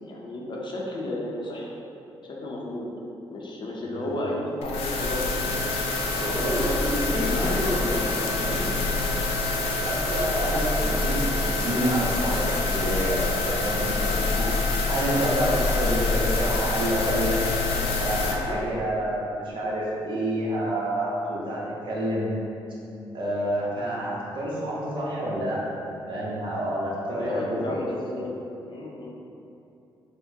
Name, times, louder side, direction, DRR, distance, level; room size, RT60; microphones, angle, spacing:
voice 1, 0.0-1.8 2.2-2.9 3.3-5.2 6.9-8.7 18.2-18.6 27.2-29.2, left 1 dB, 50° left, -3 dB, 0.6 m, -33 dB
voice 2, 3.9-4.3 6.2-7.9 8.4-8.8 9.7-14.5 14.9-17.4 18.0-22.3 23.1-25.8 26.1-27.9, right 1 dB, 55° right, -6 dB, 0.9 m, -28 dB
sound 1, 4.6-18.3, left 3 dB, 90° left, 0.4 m, -26 dB
4.3 x 2.1 x 2.8 m, 2.8 s
supercardioid pair, 65°, 10 cm